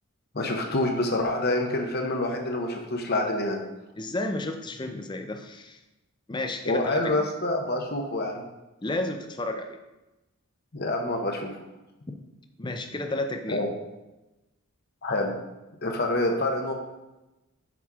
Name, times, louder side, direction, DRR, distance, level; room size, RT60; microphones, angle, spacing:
voice 1, 0.3-3.6 6.6-8.4 10.7-11.5 13.5-13.7 15.0-15.3 15.8-16.7, left 2 dB, 45° left, 2 dB, 0.8 m, -27 dB
voice 2, 4.0-5.8 6.3-7.3 8.8-9.8 12.6-13.6, left 2 dB, 20° left, 6 dB, 0.5 m, -32 dB
6.0 x 5.9 x 4.7 m, 1.0 s
head